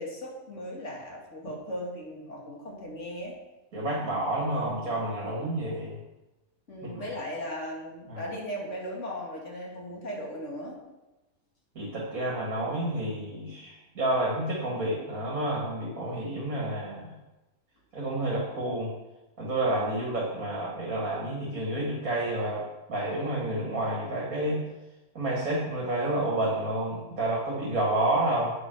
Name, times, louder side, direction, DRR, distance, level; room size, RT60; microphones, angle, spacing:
voice 1, 0.0-3.3 5.4-5.5 6.7-10.8, equal, 55° left, -2 dB, 2.7 m, -37 dB
voice 2, 3.7-5.9 6.8-7.1 8.1-8.3 11.7-17.1 17.9-18.9 19.4-22.6 22.9-24.6 25.1-28.5, right 1 dB, 70° right, -5 dB, 2.8 m, -29 dB
8.6 x 8.1 x 6.2 m, 1.0 s
omnidirectional pair, 1.5 m